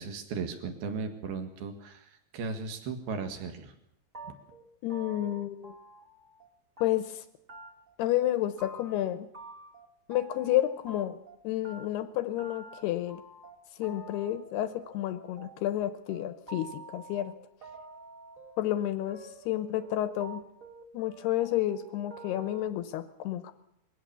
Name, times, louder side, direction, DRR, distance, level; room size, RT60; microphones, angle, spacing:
voice 1, 0.0-2.0 2.3-3.7, right 5 dB, 65° right, 7 dB, 3.5 m, -36 dB
sound 1, 4.1-6.5 6.8-7.2 7.5-7.9 8.2-9.1 9.3-11.4 11.6-22.7, right 2 dB, 25° right, 2.1 m, -48 dB
voice 2, 4.8-5.7 6.8-7.2 8.0-9.3 10.1-11.2 11.4-13.2 13.8-17.3 18.6-20.4 20.9-23.5, left 13 dB, 75° left, 11 dB, 2.6 m, -30 dB
22.0 x 17.0 x 7.0 m, 0.78 s
omnidirectional pair, 5.2 m